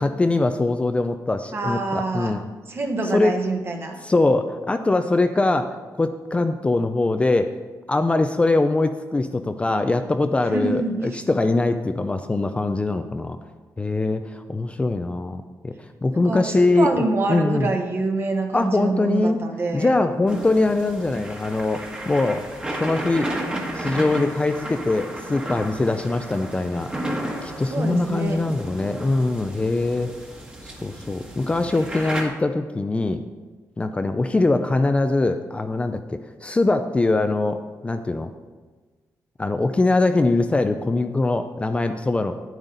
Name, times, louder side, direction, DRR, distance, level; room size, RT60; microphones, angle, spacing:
voice 1, 0.0-2.4 3.1-3.4 4.0-7.6 7.9-13.4 13.8-17.0 17.3-17.7 18.5-19.4 19.7-22.5 22.8-23.3 23.7-26.9 27.4-30.1 30.6-33.2 33.8-38.3 39.4-42.4, left 2 dB, 20° left, 7 dB, 0.4 m, -22 dB
voice 2, 1.5-2.4 2.7-4.0 10.5-11.0 16.1-19.9 27.7-28.4, right 3 dB, 40° right, 3 dB, 1.3 m, -26 dB
sound 1, 20.3-32.3, right 1 dB, 15° right, 1.5 m, -33 dB
9.7 x 9.0 x 3.9 m, 1.4 s
cardioid pair, 120°, 6 cm